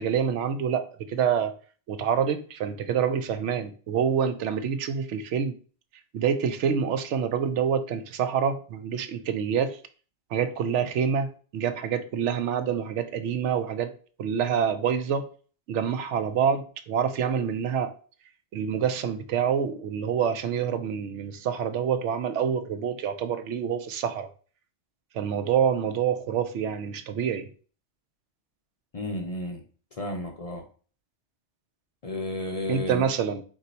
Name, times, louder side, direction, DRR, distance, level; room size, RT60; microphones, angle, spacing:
voice 1, 0.0-1.5 1.9-5.5 6.1-9.8 10.3-13.9 14.2-15.3 15.7-17.9 18.5-24.3 25.1-27.5 32.7-33.4, right 7 dB, 85° right, 0.9 m, -27 dB
voice 2, 28.9-29.6 29.9-30.6 32.0-33.1, left 1 dB, 45° left, 0.5 m, -32 dB
4.0 x 2.7 x 4.1 m
omnidirectional pair, 1.2 m